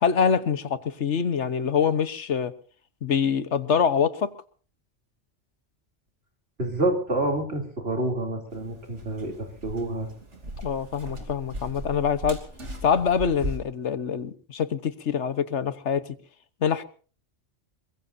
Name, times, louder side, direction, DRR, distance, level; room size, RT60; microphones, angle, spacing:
voice 1, 0.0-2.5 3.0-4.3 10.6-12.4 12.8-16.1 16.6-16.8, left 7 dB, 80° left, 1.4 m, -25 dB
voice 2, 6.6-10.1, right 2 dB, 60° right, 3.6 m, -28 dB
sound 1, 8.5-13.6, equal, 90° right, 3.3 m, -38 dB
23.0 x 22.0 x 2.7 m
omnidirectional pair, 1.2 m